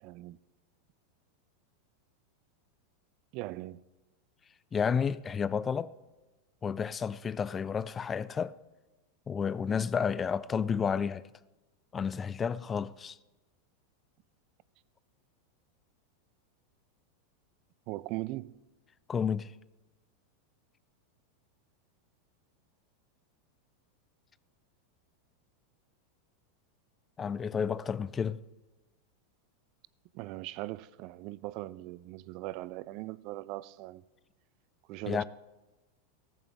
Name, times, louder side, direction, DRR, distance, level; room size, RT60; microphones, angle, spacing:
voice 1, 0.0-0.4 3.3-3.8 17.9-18.5 30.1-34.0 34.9-35.2, right 18 dB, 50° right, 0.4 m, -40 dB
voice 2, 4.7-5.9 6.6-8.6 9.3-11.3 11.9-13.2 19.1-19.5 27.2-28.4 35.1-35.2, left 6 dB, 25° left, 0.4 m, -31 dB
14.0 x 14.0 x 3.6 m
hypercardioid pair, 95°, 0 cm